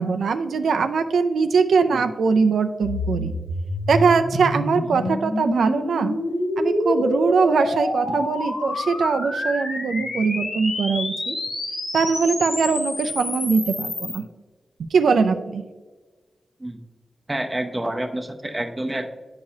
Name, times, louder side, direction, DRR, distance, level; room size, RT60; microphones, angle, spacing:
voice 1, 0.0-3.3 3.9-6.1 6.6-11.3 11.9-14.2 14.9-15.6, right 5 dB, 90° right, 7 dB, 0.4 m, -21 dB
sound 1, 2.8-14.2, left 1 dB, 80° left, 1.8 m, -27 dB
voice 2, 17.3-19.1, right 1 dB, 15° right, 4 dB, 0.6 m, -29 dB
9.5 x 4.8 x 2.7 m, 1.3 s
wide cardioid pair, 115°, 0 cm